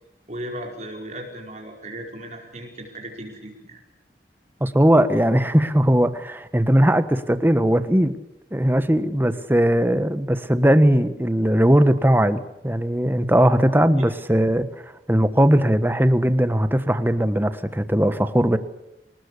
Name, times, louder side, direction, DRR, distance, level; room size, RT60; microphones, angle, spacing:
voice 1, 0.3-3.8, right 1 dB, 40° right, 1 dB, 4.9 m, -36 dB
voice 2, 4.6-8.2 8.5-14.7 15.1-18.6, equal, 10° right, 11 dB, 1.4 m, -19 dB
26.5 x 20.0 x 8.3 m, 0.89 s
head